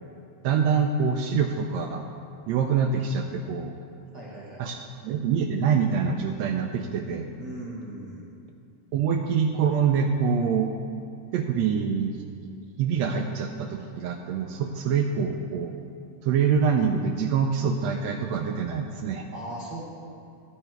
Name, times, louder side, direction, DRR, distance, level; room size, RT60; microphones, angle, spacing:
voice 1, 0.4-2.0 2.5-3.7 4.6-4.8 5.0-7.3 8.9-10.7 11.3-12.1 12.8-15.7 16.2-19.3, right 6 dB, 85° right, 4 dB, 1.5 m, -25 dB
voice 2, 4.1-4.6 7.4-8.3 19.3-19.8, right 1 dB, 60° right, -5 dB, 1.1 m, -38 dB
12.5 x 8.2 x 4.5 m, 2.5 s
omnidirectional pair, 3.5 m